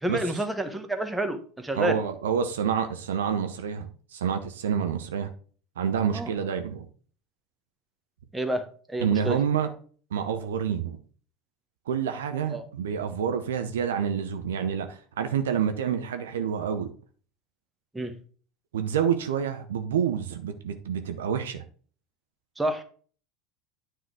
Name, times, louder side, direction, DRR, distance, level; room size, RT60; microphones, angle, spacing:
voice 1, 0.0-2.0 6.1-6.3 8.3-9.4 12.5-12.6 17.9-18.1 22.6-22.8, right 1 dB, 10° right, 1.3 m, -29 dB
voice 2, 1.7-5.3 5.8-6.9 9.0-9.7 10.1-11.0 11.9-16.9 18.7-21.6, right 7 dB, 70° right, 0.8 m, -28 dB
9.4 x 4.0 x 4.8 m
figure-of-eight pair, 75°, 0 cm